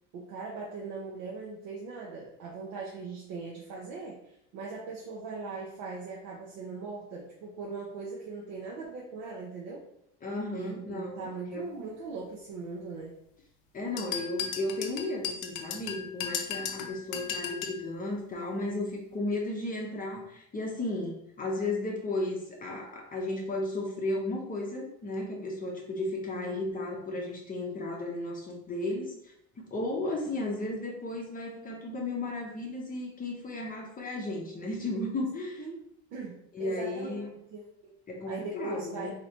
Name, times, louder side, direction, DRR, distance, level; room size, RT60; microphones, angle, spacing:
voice 1, 0.1-9.8 10.5-13.1 26.4-26.6 35.6-35.8 36.1-37.2 37.5-37.9 38.3-39.2, right 4 dB, 75° right, -3 dB, 0.7 m, -40 dB
voice 2, 10.2-11.7 13.7-35.6 36.5-37.3 38.1-39.2, left 2 dB, 25° left, -1 dB, 0.6 m, -34 dB
sound 1, 14.0-17.8, left 7 dB, 65° left, 0.6 m, -35 dB
3.2 x 2.8 x 2.7 m, 0.74 s
cardioid pair, 115°, 33 cm